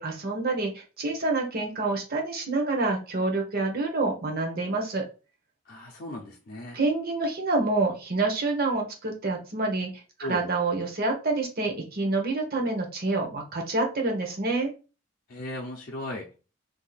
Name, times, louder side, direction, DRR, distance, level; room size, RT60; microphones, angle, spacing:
voice 1, 0.0-5.0 6.7-9.9 10.2-14.7, right 3 dB, 50° right, 0.9 m, -27 dB
voice 2, 5.7-6.8 10.2-10.5 15.3-16.4, left 1 dB, 50° left, 0.6 m, -36 dB
2.7 x 2.5 x 4.0 m
head